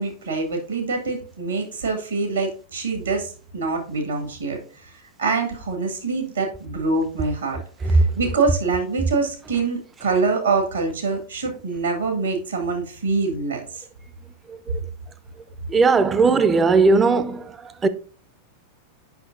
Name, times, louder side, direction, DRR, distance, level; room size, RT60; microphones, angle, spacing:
voice 1, 0.0-4.9 5.2-13.8, right 4 dB, 75° right, 1.7 m, -25 dB
voice 2, 15.7-17.9, right 4 dB, 20° right, 0.5 m, -18 dB
8.0 x 5.7 x 2.5 m
figure-of-eight pair, 90°, 0 cm